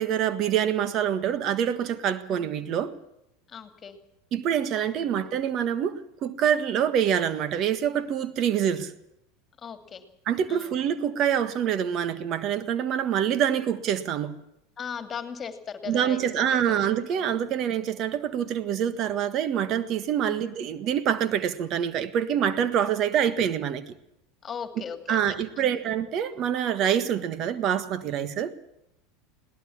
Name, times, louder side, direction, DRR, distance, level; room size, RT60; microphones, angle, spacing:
voice 1, 0.0-2.9 4.3-8.9 10.3-14.4 15.9-23.9 25.1-28.5, right 9 dB, 45° right, 1.5 m, -26 dB
voice 2, 3.5-4.0 5.0-5.2 9.6-10.1 10.5-10.8 14.8-16.4 17.1-17.4 20.2-20.4 23.0-23.1 24.4-25.8, left 7 dB, 30° left, 2.7 m, -39 dB
21.5 x 17.5 x 7.3 m
hypercardioid pair, 85°, 0 cm